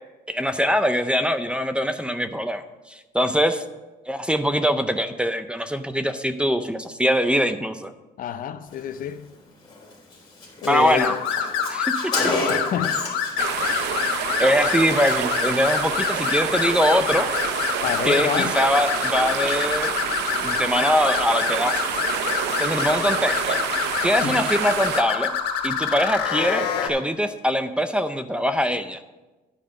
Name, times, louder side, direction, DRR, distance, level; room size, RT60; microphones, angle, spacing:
voice 1, 0.3-3.6 4.1-7.9 10.7-11.1 11.7-12.1 14.0-14.1 14.4-17.3 18.0-19.9 20.4-21.8 22.6-23.6 24.0-25.3 25.6-29.0, equal, 5° right, 0.5 m, -23 dB
voice 2, 8.2-9.3 10.6-11.2 12.5-13.0 17.8-18.6 24.2-24.5, left 9 dB, 55° left, 0.6 m, -28 dB
Car, 9.7-9.8 10.1-10.2 10.4-13.4 13.6-13.9, left 2 dB, 25° left, 2.9 m, -29 dB
sound 1, 11.0-26.9, left 7 dB, 85° left, 1.3 m, -26 dB
sound 2, 13.4-25.0, right 9 dB, 90° right, 0.7 m, -28 dB
10.0 x 4.8 x 6.5 m
cardioid pair, 110°, 17 cm